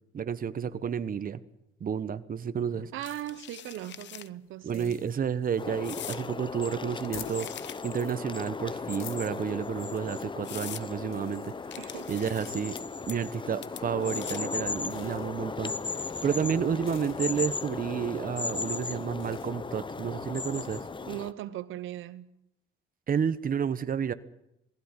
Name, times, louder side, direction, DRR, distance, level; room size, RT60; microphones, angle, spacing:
voice 1, 0.1-1.4 1.8-2.9 4.6-7.5 7.8-11.5 12.1-12.7 13.1-15.7 16.2-20.8 23.1-24.1, right 7 dB, 45° right, 1.1 m, -31 dB
sound 1, 2.6-19.5, left 10 dB, 80° left, 1.5 m, -52 dB
voice 2, 2.9-5.0 11.8-12.2 21.0-22.3, right 13 dB, 85° right, 1.1 m, -39 dB
sound 2, 3.0-4.3 4.7-4.9 5.8-6.2 6.9-8.1 8.9-9.5 10.0-10.1 10.4-10.9 11.7-12.8 13.1-13.4 13.6-14.6, left 11 dB, 65° left, 0.8 m, -43 dB
sound 3, 5.6-21.3, left 4 dB, 25° left, 0.8 m, -36 dB
19.5 x 16.0 x 9.8 m
cardioid pair, 90°, 20 cm